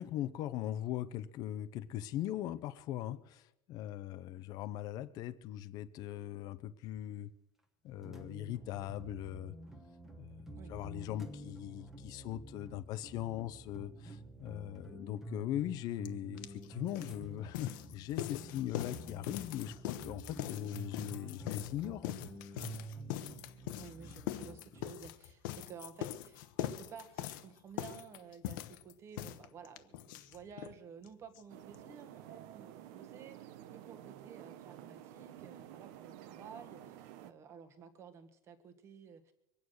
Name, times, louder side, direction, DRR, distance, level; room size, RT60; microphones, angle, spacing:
voice 1, 0.0-7.3 7.8-9.5 10.2-22.3, left 13 dB, 35° left, 13 dB, 0.6 m, -40 dB
sound 1, 8.0-24.9, right 2 dB, 5° right, 1.2 m, -50 dB
sound 2, 16.0-16.1 16.4-30.8 31.0-31.1 31.3-31.4 31.7-31.8, left 12 dB, 70° left, 1.0 m, -42 dB
voice 2, 23.7-39.3, right 6 dB, 25° right, 9 dB, 1.4 m, -53 dB
sound 3, 31.5-37.3, right 12 dB, 55° right, 1.0 m, -51 dB
23.0 x 9.5 x 6.4 m, 0.84 s
cardioid pair, 175°, 11 cm